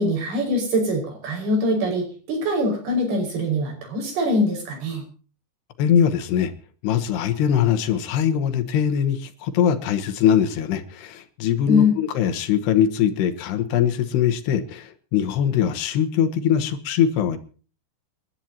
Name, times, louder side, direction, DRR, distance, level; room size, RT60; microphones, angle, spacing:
voice 1, 0.0-5.0 11.7-11.9, left 1 dB, 60° right, 2 dB, 7.4 m, -23 dB
voice 2, 5.8-6.5 6.8-17.4, left 9 dB, 75° left, 10 dB, 3.2 m, -22 dB
28.5 x 12.0 x 2.9 m, 0.37 s
omnidirectional pair, 5.1 m